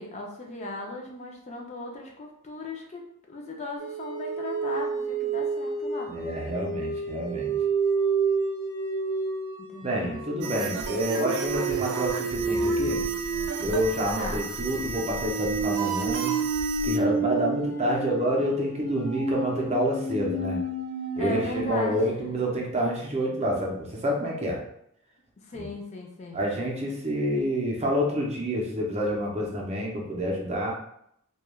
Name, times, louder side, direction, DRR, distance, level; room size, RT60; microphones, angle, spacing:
voice 1, 0.0-6.1 9.7-10.8 14.2-14.6 21.2-22.4 25.4-26.5, left 2 dB, 30° left, 0 dB, 0.4 m, -37 dB
sound 1, 3.8-21.7, right 4 dB, 10° left, 1.0 m, -30 dB
voice 2, 6.1-7.5 9.8-13.0 13.6-16.3 16.8-20.6 21.2-24.6 25.5-25.7 26.3-30.7, equal, 30° right, -1 dB, 0.5 m, -28 dB
sound 2, 10.4-17.0, right 4 dB, 85° right, 0.4 m, -34 dB
3.1 x 2.2 x 2.2 m, 0.73 s
head